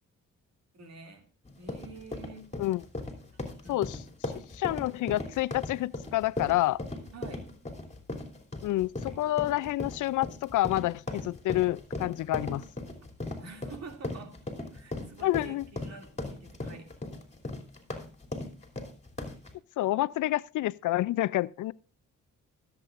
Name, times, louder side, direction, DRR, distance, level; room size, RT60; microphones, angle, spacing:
voice 1, 0.7-1.3 1.6-2.5 3.3-4.1 7.1-7.5 13.4-14.4 14.7-16.9, right 4 dB, 60° right, 2.6 m, -48 dB
sound 1, 1.5-19.5, left 2 dB, 20° left, 3.0 m, -38 dB
voice 2, 4.5-6.8 8.6-12.6 15.2-15.6 19.8-21.7, left 16 dB, 75° left, 0.5 m, -28 dB
23.5 x 8.2 x 2.5 m
cardioid pair, 65°, 30 cm